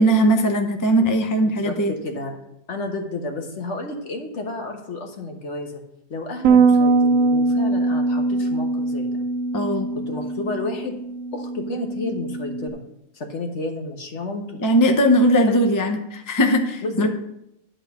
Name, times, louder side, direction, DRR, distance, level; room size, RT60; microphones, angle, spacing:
voice 1, 0.0-1.9 9.5-9.9 14.6-17.1, equal, 20° left, 5 dB, 0.5 m, -19 dB
voice 2, 1.4-2.3 2.7-5.8 6.1-9.1 9.9-10.9 11.3-12.8 13.1-14.6 16.8-17.1, left 2 dB, 55° left, 3 dB, 1.4 m, -31 dB
Bass guitar, 6.4-12.7, right 3 dB, 70° right, 0.8 m, -21 dB
10.5 x 3.9 x 6.9 m, 0.82 s
omnidirectional pair, 1.5 m